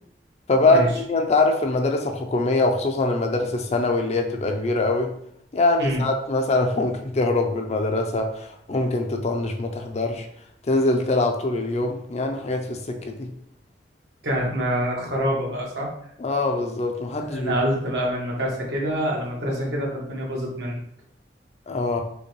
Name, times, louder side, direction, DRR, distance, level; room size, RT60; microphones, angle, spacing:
voice 1, 0.5-5.1 5.5-10.3 10.7-13.3 16.2-17.5 21.7-22.0, left 2 dB, 40° left, 4 dB, 0.4 m, -23 dB
voice 2, 14.2-15.9 17.2-20.8, equal, 75° right, -2 dB, 1.2 m, -26 dB
5.0 x 2.2 x 3.1 m, 0.70 s
head